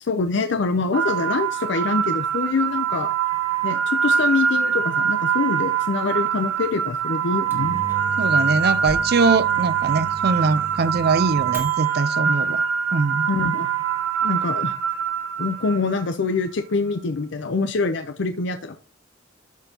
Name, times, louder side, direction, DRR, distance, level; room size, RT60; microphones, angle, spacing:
voice 1, 0.0-3.1 3.6-7.8 13.3-13.7 14.2-14.8 15.4-18.8, left 4 dB, 60° left, 0.5 m, -25 dB
sound 1, 0.9-16.1, right 7 dB, 85° right, 0.7 m, -24 dB
Microwave oven, 7.3-12.1, right 1 dB, 10° right, 1.3 m, -37 dB
voice 2, 8.2-12.6 12.9-13.3, right 4 dB, 55° right, 0.5 m, -22 dB
13.0 x 4.4 x 2.8 m
head